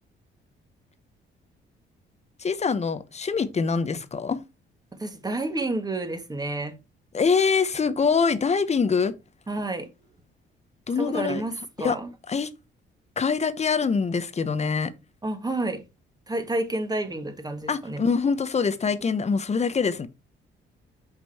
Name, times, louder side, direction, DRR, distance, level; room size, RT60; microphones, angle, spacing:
voice 1, 2.4-4.4 7.1-9.1 10.9-11.4 11.8-12.0 12.3-12.5 13.2-14.9 17.7-20.1, left 5 dB, 35° left, 0.9 m, -24 dB
voice 2, 5.0-6.8 9.5-9.9 11.0-12.1 15.2-15.8 16.3-18.0, right 2 dB, 20° right, 1.8 m, -30 dB
6.2 x 5.3 x 4.3 m
cardioid pair, 90°, 20 cm